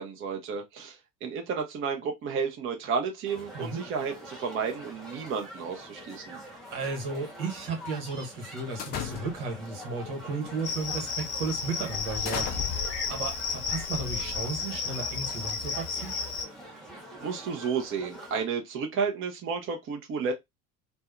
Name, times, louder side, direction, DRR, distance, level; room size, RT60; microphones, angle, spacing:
voice 1, 0.0-6.4 17.2-20.3, right 5 dB, 25° right, 0.6 m, -32 dB
sound 1, 3.2-18.4, equal, ahead, 0.9 m, -45 dB
voice 2, 6.7-12.5 13.1-16.1, right 4 dB, 70° right, 1.2 m, -34 dB
sound 2, 8.8-9.6 10.4-10.7 11.1-11.3 11.9-14.8, left 9 dB, 25° left, 0.4 m, -37 dB
Cricket, 10.6-16.4, left 5 dB, 80° left, 0.8 m, -33 dB
2.6 x 2.1 x 2.3 m
figure-of-eight pair, 70°, 46 cm